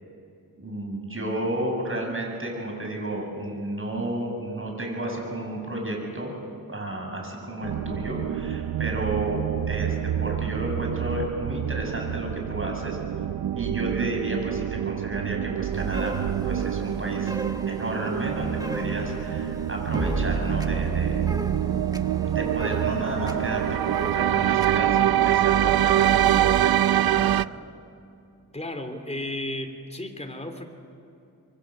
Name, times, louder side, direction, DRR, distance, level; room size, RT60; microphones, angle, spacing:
voice 1, 0.6-6.3 6.7-9.9 10.2-13.0 13.5-16.1 16.4-17.4 17.7-21.3 22.2-27.4, right 1 dB, 35° right, 1 dB, 7.9 m, -32 dB
sound 1, 7.6-27.4, right 11 dB, 80° right, 0.5 m, -25 dB
sound 2, 15.7-24.8, right 1 dB, 10° right, 1.4 m, -35 dB
voice 2, 28.5-30.7, left 1 dB, 20° left, 5 dB, 3.3 m, -33 dB
26.5 x 24.0 x 7.7 m, 2.7 s
wide cardioid pair, 70°, 36 cm